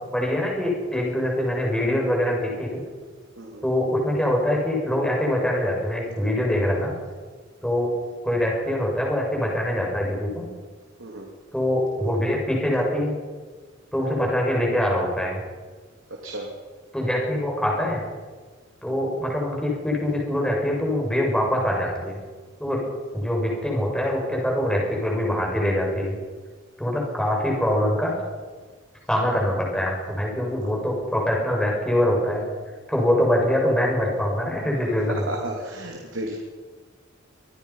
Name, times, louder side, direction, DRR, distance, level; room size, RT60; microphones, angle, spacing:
voice 1, 0.1-2.8 3.6-6.9 7.6-7.9 8.2-10.4 11.5-13.1 13.9-15.4 16.9-18.0 18.8-22.2 22.6-22.8 23.1-26.2 26.8-28.1 29.1-32.5 32.9-35.3, left 1 dB, 5° left, -2 dB, 6.6 m, -24 dB
voice 2, 35.3-36.4, right 1 dB, 75° right, 0 dB, 3.1 m, -33 dB
25.5 x 19.0 x 5.7 m, 1.4 s
head